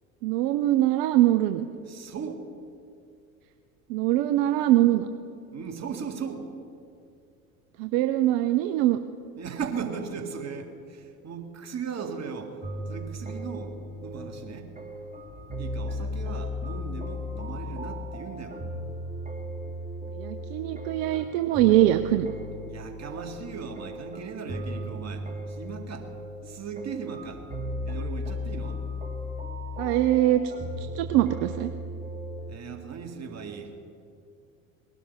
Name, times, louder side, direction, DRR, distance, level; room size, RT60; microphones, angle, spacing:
voice 1, 0.2-1.7 3.9-5.1 7.8-9.0 20.2-22.3 29.8-30.5 30.8-31.7, right 14 dB, 65° right, 10 dB, 0.8 m, -23 dB
voice 2, 1.9-2.4 5.5-6.5 9.4-12.6 12.9-13.7 14.0-14.7 15.6-18.6 22.7-26.1 26.4-27.4 27.8-28.8 32.5-33.7, right 6 dB, 35° right, 4 dB, 2.2 m, -37 dB
sound 1, 12.6-32.6, left 1 dB, 20° right, 1.9 m, -36 dB
20.0 x 12.0 x 5.6 m, 2.4 s
hypercardioid pair, 75°, 43 cm